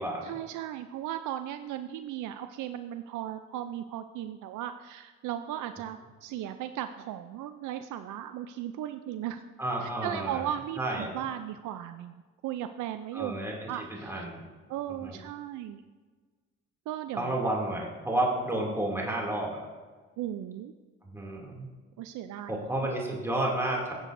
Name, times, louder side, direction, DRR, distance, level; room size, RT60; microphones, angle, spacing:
voice 1, 0.2-9.4 9.8-13.4 13.7-14.3 14.7-15.8 16.9-17.4 20.2-20.7 22.0-22.7, right 11 dB, 80° right, 9 dB, 0.5 m, -36 dB
voice 2, 9.6-10.4 10.8-11.1 13.1-14.4 15.0-15.2 17.2-19.6 21.0-21.7 22.5-23.9, right 1 dB, 10° right, -3 dB, 2.5 m, -31 dB
15.5 x 7.6 x 2.6 m, 1.4 s
cardioid pair, 90°, 30 cm